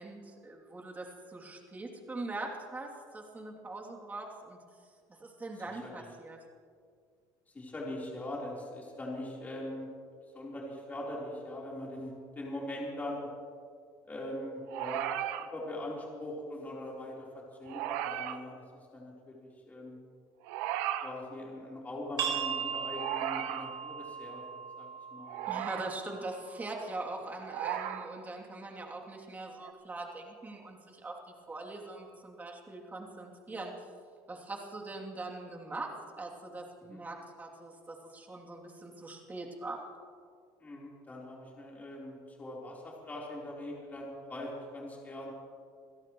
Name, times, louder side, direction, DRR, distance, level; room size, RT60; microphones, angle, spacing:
voice 1, 0.0-4.6 5.2-6.4 25.5-31.2 31.5-33.7 34.3-39.8, right 2 dB, 20° right, 0 dB, 3.0 m, -42 dB
voice 2, 5.6-6.1 7.5-9.9 10.3-13.3 14.0-15.1 15.4-20.0 21.0-24.4 24.8-25.6 36.9-37.0 40.6-45.3, left 1 dB, 15° left, -4 dB, 4.0 m, -42 dB
sound 1, 14.7-15.5 17.7-18.4 20.4-21.1 22.9-23.7 25.3-25.9 27.4-28.1 29.6-29.7, right 12 dB, 90° right, 1.0 m, -35 dB
sound 2, 22.2-27.6, right 7 dB, 50° right, 4.3 m, -39 dB
27.0 x 17.0 x 3.2 m, 2.1 s
cardioid pair, 125°, 9 cm